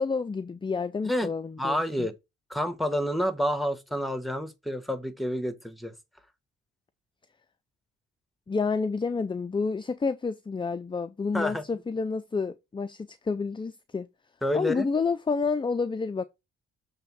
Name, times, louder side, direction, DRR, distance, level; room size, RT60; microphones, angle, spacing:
voice 1, 0.0-2.1 8.5-14.1 14.5-16.2, left 4 dB, 15° left, 0.5 m, -29 dB
voice 2, 1.6-2.1 2.5-5.9 11.3-11.6 14.4-14.9, equal, ahead, 1.2 m, -29 dB
6.8 x 3.6 x 6.0 m
cardioid pair, 90°, 30 cm